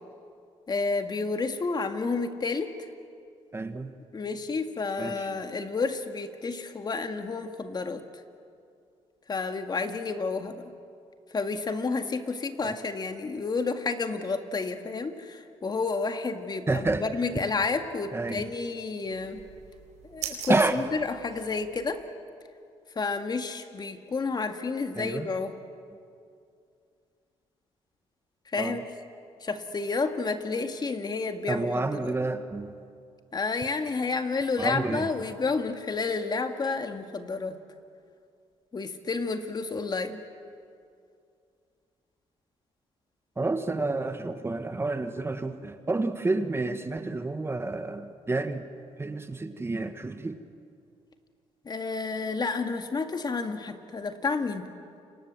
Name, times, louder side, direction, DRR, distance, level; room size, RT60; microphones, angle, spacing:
voice 1, 0.7-2.7 4.1-8.0 9.3-10.7 11.3-19.4 20.0-22.0 23.0-25.5 28.5-28.8 29.4-32.1 33.3-37.6 38.7-40.2 51.7-54.7, left 4 dB, 35° left, 7 dB, 2.0 m, -30 dB
voice 2, 3.5-3.9 5.0-5.4 12.6-12.7 16.7-17.0 18.1-18.4 20.5-20.8 24.9-25.3 28.6-28.8 31.5-32.7 34.6-35.1 43.4-48.7 49.0-50.4, right 3 dB, 20° right, 9 dB, 1.5 m, -29 dB
sound 1, 19.1-21.9, right 8 dB, 75° right, 4.9 m, -42 dB
29.0 x 26.0 x 7.6 m, 2.4 s
cardioid pair, 85°, 12 cm